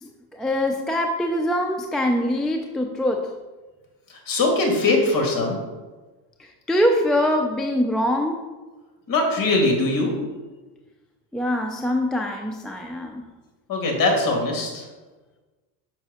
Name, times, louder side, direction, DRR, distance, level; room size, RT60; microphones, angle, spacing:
voice 1, 0.0-3.3 6.4-8.4 11.3-13.2, left 1 dB, ahead, 2 dB, 0.4 m, -23 dB
voice 2, 4.3-5.6 9.1-10.1 13.7-14.8, left 2 dB, 45° left, 1 dB, 2.3 m, -21 dB
6.0 x 6.0 x 4.2 m, 1.2 s
supercardioid pair, 110°, 48 cm